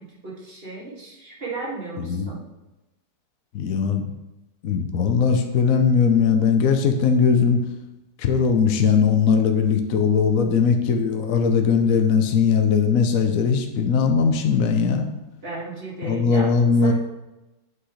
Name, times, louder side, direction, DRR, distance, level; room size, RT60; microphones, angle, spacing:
voice 1, 0.0-2.5 15.4-16.9, right 3 dB, 30° right, -5 dB, 2.1 m, -35 dB
voice 2, 2.0-2.3 3.5-4.1 4.6-7.6 8.2-15.1 16.0-16.9, left 6 dB, 60° left, 5 dB, 1.0 m, -19 dB
8.8 x 4.9 x 5.0 m, 0.99 s
omnidirectional pair, 2.0 m